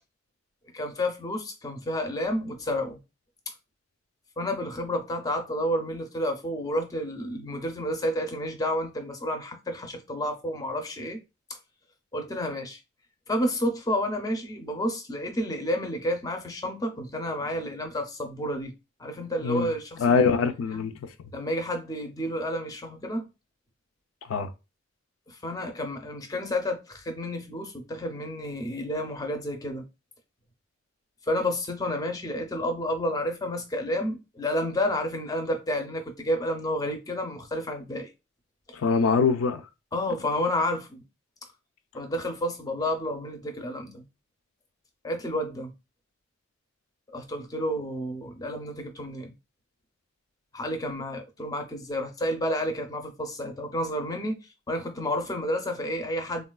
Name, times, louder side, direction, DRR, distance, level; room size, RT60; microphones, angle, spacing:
voice 1, 0.7-3.0 4.4-11.2 12.1-12.8 13.3-18.7 19.0-20.2 20.7-20.9 21.3-23.3 25.3-29.8 31.3-38.1 39.9-41.0 41.9-44.1 45.0-45.7 47.1-49.3 50.5-54.4 54.7-56.5, left 1 dB, 20° left, 0.4 m, -30 dB
voice 2, 19.4-19.7 20.0-20.9 24.3-24.5 38.7-39.6, left 5 dB, 80° left, 0.4 m, -23 dB
3.5 x 2.3 x 2.2 m
head